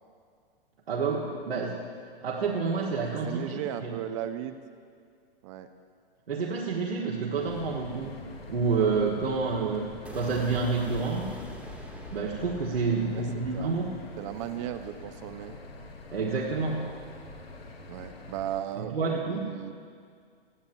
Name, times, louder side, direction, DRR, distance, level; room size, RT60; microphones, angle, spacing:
voice 1, 0.9-1.8 2.2-3.9 6.3-8.2 8.5-11.3 12.1-13.9 16.1-16.9 18.8-19.5, right 4 dB, 75° right, -4 dB, 1.4 m, -29 dB
voice 2, 3.2-4.6 5.4-5.7 13.0-13.3 13.5-13.8 14.2-15.6 17.9-19.0 19.3-19.7, right 11 dB, 30° right, 9 dB, 0.5 m, -36 dB
sound 1, 7.4-18.6, left 2 dB, 80° left, 1.9 m, -45 dB
sound 2, 10.0-16.1, right 1 dB, 5° right, 1.3 m, -46 dB
18.5 x 12.5 x 2.7 m, 2.1 s
figure-of-eight pair, 110°, 30 cm